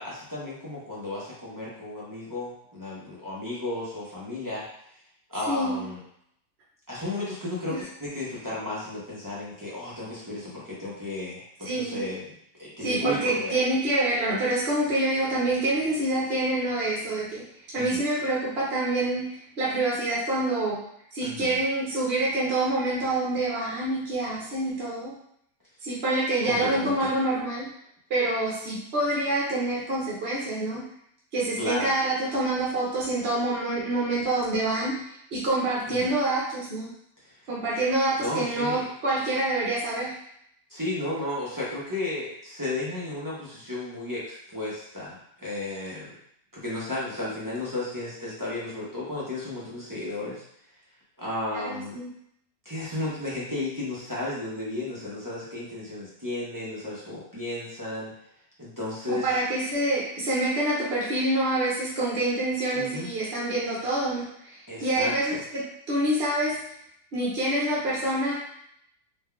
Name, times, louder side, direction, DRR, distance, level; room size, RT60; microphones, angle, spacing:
voice 1, 0.0-4.7 5.3-6.0 6.9-12.3 12.6-13.6 17.8-18.0 21.2-21.6 26.4-27.1 31.6-31.9 35.9-36.1 37.2-37.4 38.2-38.8 40.7-46.1 46.5-50.4 51.2-52.0 52.6-58.1 58.6-59.4 62.7-63.1 64.7-65.4, left 2 dB, 25° right, -8 dB, 0.5 m, -33 dB
voice 2, 5.5-5.8 7.7-7.8 11.6-12.1 12.8-20.8 21.1-25.2 25.8-27.7 28.1-30.8 31.3-35.0 35.3-36.9 37.5-40.1 51.5-52.1 59.1-66.6 67.1-68.3, right 2 dB, 50° right, -6 dB, 0.8 m, -26 dB
3.7 x 3.0 x 2.2 m, 0.72 s
omnidirectional pair, 1.7 m